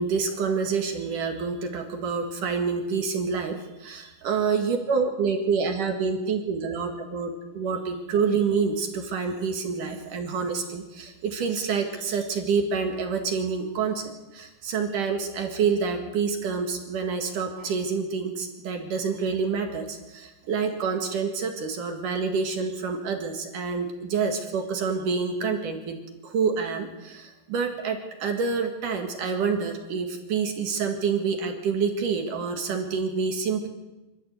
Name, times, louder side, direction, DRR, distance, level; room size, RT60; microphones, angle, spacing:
voice 1, 0.0-26.0 26.2-33.7, right 5 dB, 55° right, 4 dB, 3.1 m, -27 dB
25.5 x 14.0 x 8.3 m, 1.1 s
omnidirectional pair, 4.9 m